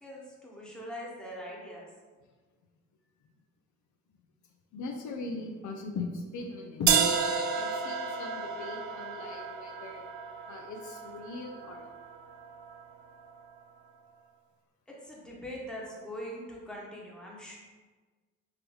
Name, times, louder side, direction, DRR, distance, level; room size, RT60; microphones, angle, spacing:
voice 1, 0.0-1.8 14.9-17.5, equal, 5° left, -4 dB, 1.1 m, -42 dB
voice 2, 4.7-6.9 7.5-10.0 10.5-11.9, left 4 dB, 75° left, 2 dB, 0.6 m, -39 dB
sound 1, 6.9-12.8, right 6 dB, 70° right, 0.5 m, -31 dB
3.8 x 3.1 x 3.1 m, 1.4 s
cardioid pair, 90°, 30 cm